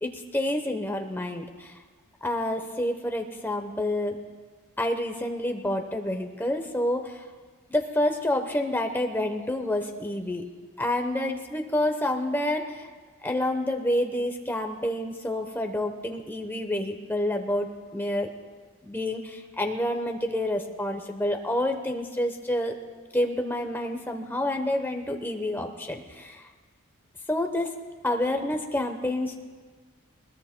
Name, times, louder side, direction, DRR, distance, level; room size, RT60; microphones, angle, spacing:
voice 1, 0.0-1.8 2.2-4.2 4.8-7.2 7.7-10.4 10.8-12.9 13.2-18.3 18.8-22.8 23.1-26.4 27.3-27.7 28.0-29.4, left 1 dB, 10° left, 3 dB, 0.8 m, -28 dB
20.5 x 20.5 x 2.2 m, 1.5 s
head